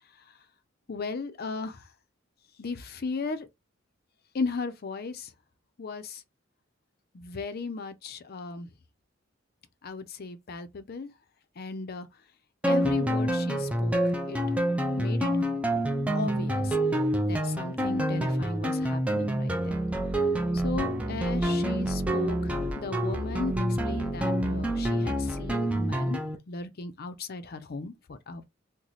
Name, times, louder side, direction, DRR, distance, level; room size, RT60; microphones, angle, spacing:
voice 1, 0.9-1.8 2.6-3.5 4.3-5.3 5.8-6.2 7.1-8.7 9.8-11.1 11.6-12.1 12.7-14.4 15.0-15.3 16.1-16.8 17.3-19.8 20.5-22.5 22.8-23.5 23.8-26.2 26.5-28.4, left 4 dB, 50° left, 0.6 m, -36 dB
sound 1, 12.6-26.4, right 1 dB, 5° right, 0.5 m, -27 dB
3.1 x 2.2 x 4.0 m
head